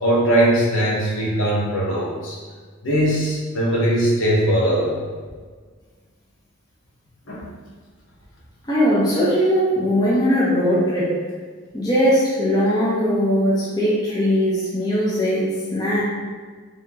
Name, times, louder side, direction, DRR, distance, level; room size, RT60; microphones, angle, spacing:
voice 1, 0.0-2.4 2.8-5.0 7.3-7.5, right 1 dB, 60° left, -5 dB, 0.9 m, -20 dB
voice 2, 8.7-11.2 11.7-16.0, equal, 20° left, -8 dB, 0.6 m, -20 dB
2.9 x 2.8 x 3.5 m, 1.5 s
head